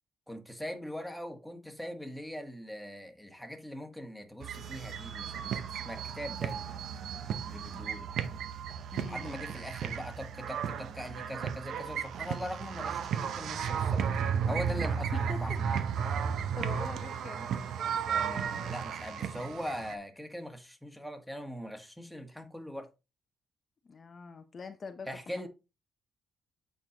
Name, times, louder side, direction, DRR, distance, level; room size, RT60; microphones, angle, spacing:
voice 1, 0.3-6.9 7.5-8.1 9.1-14.0 14.5-15.8 18.1-22.9 25.1-25.5, equal, ahead, 1.4 m, -41 dB
sound 1, 4.4-20.0, right 7 dB, 70° right, 0.7 m, -34 dB
voice 2, 8.9-9.3 15.1-16.1 16.6-17.5 23.8-25.1 25.4-25.5, left 5 dB, 40° left, 0.6 m, -44 dB
8.2 x 4.7 x 2.9 m
cardioid pair, 90°, 0 cm